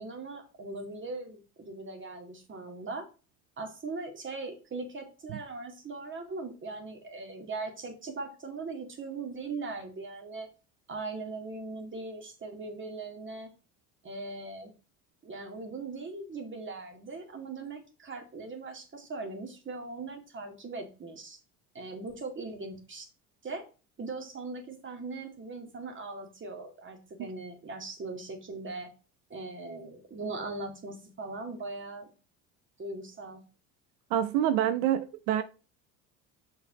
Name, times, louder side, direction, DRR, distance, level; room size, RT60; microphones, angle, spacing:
voice 1, 0.0-3.1 3.6-10.5 10.9-13.5 14.0-14.7 15.2-21.4 21.7-23.0 23.4-23.7 24.0-28.9 29.3-32.1 32.8-33.4, right 3 dB, 30° right, 2.6 m, -40 dB
voice 2, 34.1-35.4, right 11 dB, 85° right, 0.7 m, -27 dB
7.2 x 5.4 x 4.1 m
supercardioid pair, 100°, 37 cm